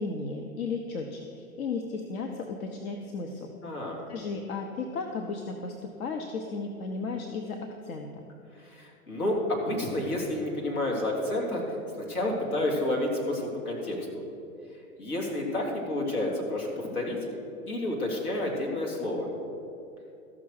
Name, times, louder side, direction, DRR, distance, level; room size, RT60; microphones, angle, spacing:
voice 1, 0.0-3.5 4.1-8.2, left 4 dB, 70° left, 4 dB, 1.1 m, -34 dB
voice 2, 3.6-4.0 8.5-11.8 12.1-14.2 15.0-17.2 17.7-19.3, left 1 dB, 85° left, -1 dB, 3.1 m, -30 dB
14.0 x 6.1 x 6.5 m, 2.8 s
hypercardioid pair, 115°, 43 cm